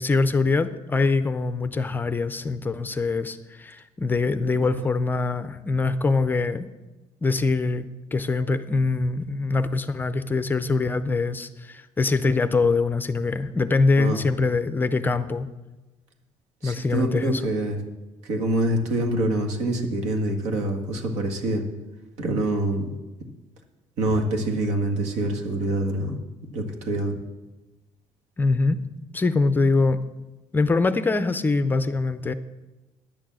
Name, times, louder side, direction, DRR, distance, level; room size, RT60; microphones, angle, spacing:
voice 1, 0.0-6.7 7.2-15.5 16.6-17.4 28.4-28.8 29.1-30.0 30.5-32.3, left 3 dB, 15° left, 12 dB, 0.4 m, -23 dB
voice 2, 16.6-17.8 18.2-21.6 22.2-22.9 24.0-26.2 26.5-27.2, right 1 dB, 85° right, 3 dB, 1.8 m, -25 dB
10.5 x 7.1 x 7.6 m, 1.1 s
cardioid pair, 155°, 11 cm